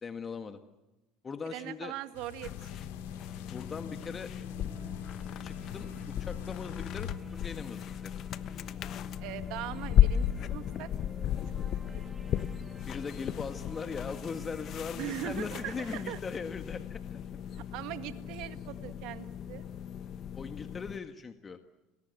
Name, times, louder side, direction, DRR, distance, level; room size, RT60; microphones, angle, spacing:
voice 1, 0.0-0.6 1.2-1.9 3.5-4.3 5.4-5.9 6.2-8.1 12.9-17.2 20.3-21.6, left 5 dB, 30° left, 7 dB, 1.7 m, -40 dB
voice 2, 1.5-2.7 9.2-10.9 11.8-12.4 15.0-16.2 17.6-19.6, right 14 dB, 65° right, 9 dB, 1.9 m, -41 dB
sound 1, 2.1-7.1, left 9 dB, 85° left, 2.4 m, -46 dB
sound 2, 2.4-21.0, left 10 dB, 50° left, 1.2 m, -34 dB
sound 3, 4.4-16.1, right 2 dB, 15° right, 2.9 m, -55 dB
29.5 x 21.5 x 8.1 m, 1.0 s
hypercardioid pair, 85°, 0 cm